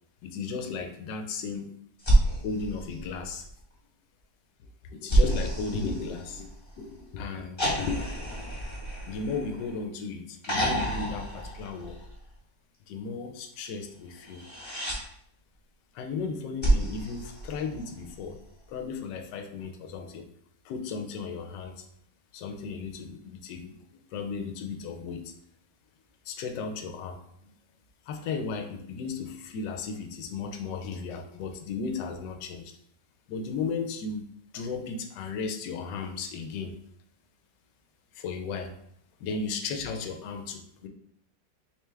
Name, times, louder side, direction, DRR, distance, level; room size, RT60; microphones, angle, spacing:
voice 1, 0.2-1.7 2.3-3.5 4.6-6.5 6.8-8.1 9.1-12.0 12.9-14.4 15.9-18.4 18.7-20.3 20.6-21.8 22.3-23.7 24.1-25.3 26.3-27.5 28.1-32.8 33.3-34.2 34.5-36.7 38.1-38.7 39.2-40.9, left 4 dB, 80° left, 5 dB, 1.2 m, -35 dB
sound 1, 2.0-3.6 5.1-6.8 7.6-9.9 10.4-12.3 14.2-15.0 16.6-18.1 19.6-19.7, right 1 dB, 20° left, 0.9 m, -28 dB
3.5 x 3.2 x 3.3 m, 0.68 s
omnidirectional pair, 2.0 m